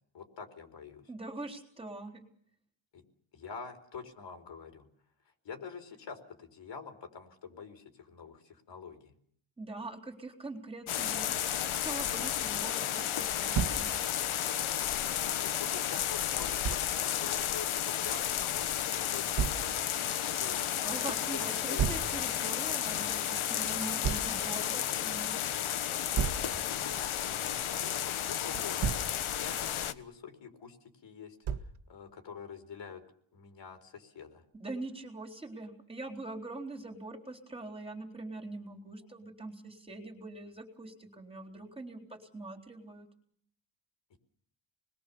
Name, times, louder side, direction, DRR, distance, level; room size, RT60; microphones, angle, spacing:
voice 1, 0.1-1.1 2.9-3.0 3.3-4.9 5.4-9.1 15.3-20.7 21.3-21.8 26.4-30.8 31.0-33.0 33.3-34.4 44.1-44.2, left 6 dB, 60° left, 6 dB, 4.2 m, -47 dB
voice 2, 1.1-2.2 9.6-14.0 20.8-25.4 34.5-43.1, right 2 dB, 10° right, 0 dB, 4.0 m, -43 dB
sound 1, 10.9-29.9, left 10 dB, 80° left, 1.4 m, -32 dB
Thump thud, 13.5-13.8 16.6-16.8 19.4-19.6 21.8-22.1 24.0-24.3 26.2-26.5 28.5-29.1 31.5-31.8, right 7 dB, 80° right, 1.8 m, -31 dB
29.5 x 21.5 x 7.1 m, 0.64 s
wide cardioid pair, 155°, 48 cm